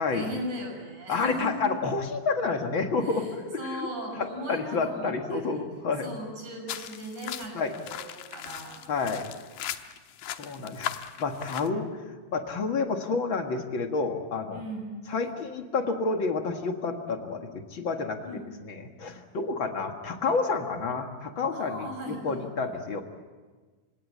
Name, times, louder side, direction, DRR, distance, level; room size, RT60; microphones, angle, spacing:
voice 1, 0.1-1.7 3.0-3.3 3.6-5.6 6.0-8.9 14.5-14.9 18.2-18.5 21.5-22.5, right 1 dB, 60° right, 2 dB, 7.7 m, -38 dB
voice 2, 1.1-3.9 4.2-6.1 7.5-7.7 8.9-9.3 10.3-11.9 12.3-14.6 15.1-18.2 18.7-23.0, left 4 dB, 45° left, 4 dB, 2.0 m, -29 dB
sound 1, 6.7-11.7, left 11 dB, 85° left, 2.7 m, -38 dB
28.5 x 17.5 x 8.7 m, 1.4 s
omnidirectional pair, 4.0 m